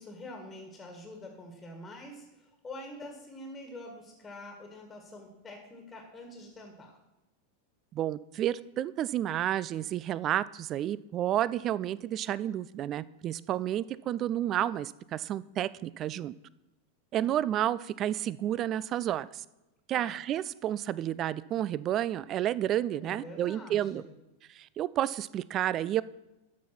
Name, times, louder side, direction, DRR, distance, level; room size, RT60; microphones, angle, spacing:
voice 1, 0.0-7.0 17.2-17.4 19.9-20.2 23.0-24.1, left 1 dB, 15° left, 3 dB, 1.7 m, -46 dB
voice 2, 7.9-16.3 17.1-19.4 19.9-24.0 24.6-26.0, right 12 dB, 30° right, 19 dB, 0.3 m, -31 dB
12.5 x 5.4 x 5.9 m, 0.97 s
figure-of-eight pair, 90°, 0 cm